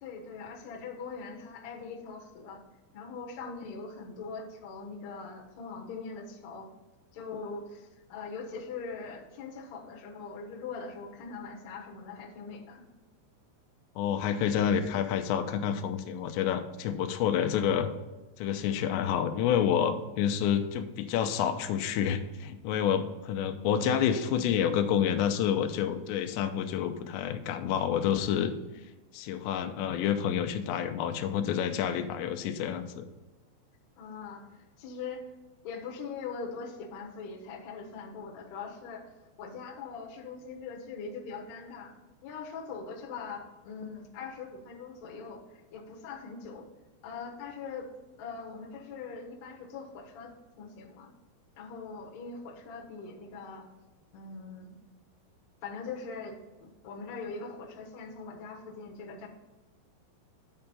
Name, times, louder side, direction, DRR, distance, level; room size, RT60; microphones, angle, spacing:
voice 1, 0.0-2.6 2.9-6.7 7.1-12.8 34.0-35.2 35.6-39.0 39.4-41.9 42.2-45.4 45.7-46.7 47.0-47.9 48.2-50.3 50.6-51.1 51.5-53.7 54.1-54.7 55.6-59.3, left 5 dB, 65° left, 0 dB, 1.7 m, -41 dB
voice 2, 14.0-17.9 18.4-28.5 29.1-33.1, left 8 dB, 90° left, 8 dB, 2.9 m, -28 dB
9.5 x 4.5 x 5.4 m, 1.1 s
omnidirectional pair, 5.0 m